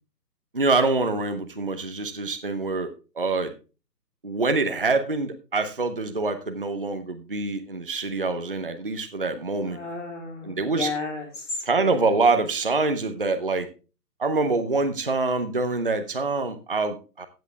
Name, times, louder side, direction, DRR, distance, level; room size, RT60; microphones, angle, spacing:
voice 1, 0.5-2.9 3.2-3.5 4.2-9.8 10.4-10.9 11.6-13.7 14.2-17.3, right 3 dB, 35° right, 7 dB, 0.7 m, -25 dB
voice 2, 9.7-12.0, left 3 dB, 45° left, 3 dB, 3.8 m, -33 dB
15.0 x 7.4 x 3.4 m, 0.33 s
hypercardioid pair, 175°, 50 cm